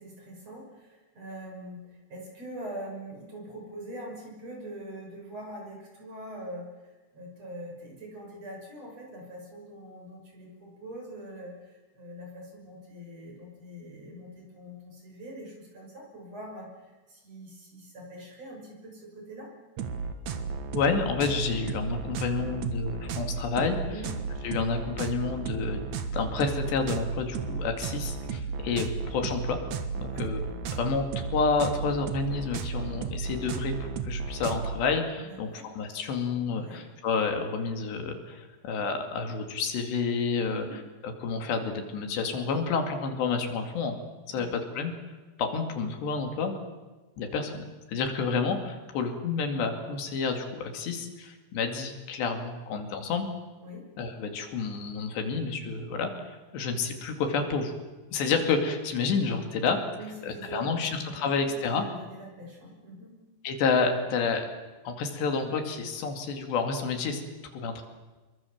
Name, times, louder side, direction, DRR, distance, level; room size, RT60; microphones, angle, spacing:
voice 1, 0.0-19.5 23.9-24.1 30.0-30.3 35.2-35.7 36.5-36.8 40.4-40.8 44.3-44.5 53.6-53.8 59.9-63.2, right 1 dB, 35° right, 0 dB, 7.2 m, -43 dB
sound 1, 19.8-34.8, right 5 dB, 60° right, 2.2 m, -34 dB
voice 2, 20.7-23.8 24.4-29.6 30.0-30.4 30.8-31.1 31.3-40.7 41.0-44.0 44.3-44.9 45.4-46.5 47.2-53.3 54.0-57.7 58.1-59.8 60.2-61.9 63.4-64.5 64.8-67.2 67.5-67.8, left 5 dB, 75° left, 5 dB, 4.5 m, -29 dB
26.5 x 23.5 x 7.3 m, 1.2 s
omnidirectional pair, 5.0 m